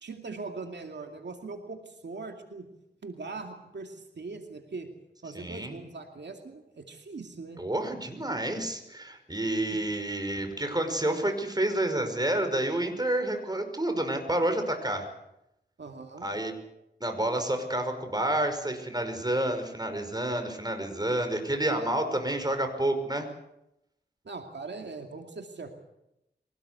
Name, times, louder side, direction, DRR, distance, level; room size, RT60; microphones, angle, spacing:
voice 1, 0.0-2.6 3.0-4.9 5.2-7.6 15.8-16.3 24.2-25.7, right 3 dB, 85° right, 4 dB, 2.5 m, -41 dB
voice 2, 5.3-5.8 7.6-15.1 16.2-16.5 17.0-23.3, right 1 dB, 20° right, 6 dB, 5.4 m, -29 dB
23.5 x 18.5 x 8.2 m, 0.86 s
wide cardioid pair, 50°, 18 cm